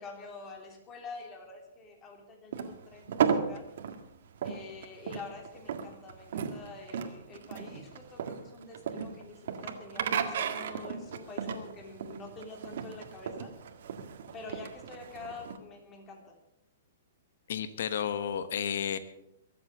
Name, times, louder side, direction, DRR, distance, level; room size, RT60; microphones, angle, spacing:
voice 1, 0.0-3.6 4.4-13.5 14.3-16.4, left 3 dB, 20° left, 2 dB, 3.2 m, -46 dB
sound 1, 2.5-15.6, right 7 dB, 65° right, 1.8 m, -35 dB
voice 2, 17.5-19.0, left 8 dB, 65° left, 12 dB, 1.1 m, -32 dB
22.5 x 8.0 x 6.7 m, 0.87 s
hypercardioid pair, 150°, 0 cm